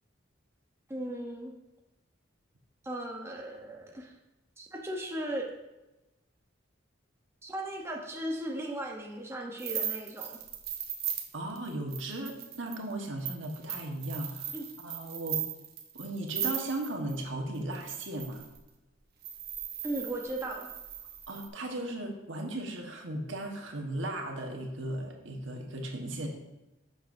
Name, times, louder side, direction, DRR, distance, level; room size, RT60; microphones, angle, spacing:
voice 1, 0.9-1.5 2.8-4.1 4.6-5.5 7.4-10.4 14.5-14.7 19.8-20.7, right 1 dB, 15° right, 0 dB, 0.9 m, -37 dB
sound 1, 9.6-17.2 17.7-18.6 19.2-21.5, right 9 dB, 55° right, 0.9 m, -37 dB
voice 2, 11.3-14.6 14.8-15.4 15.9-18.4 21.3-26.3, right 1 dB, 75° right, 2 dB, 1.3 m, -36 dB
11.0 x 6.7 x 2.6 m, 1.0 s
head